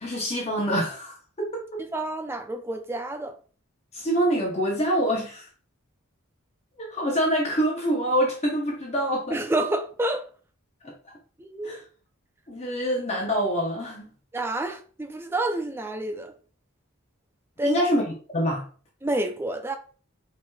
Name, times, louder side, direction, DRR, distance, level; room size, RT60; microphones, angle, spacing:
voice 1, 0.0-1.8 3.9-5.5 6.8-9.4 10.8-11.1 11.6-11.8 12.5-14.1 17.6-18.0 18.3-18.7, equal, 30° left, 0.6 m, -26 dB
voice 2, 1.9-3.4 9.3-10.3 11.4-11.8 14.3-16.3 17.6-17.8 19.0-19.8, right 2 dB, 10° right, 0.3 m, -29 dB
4.5 x 3.0 x 2.2 m
head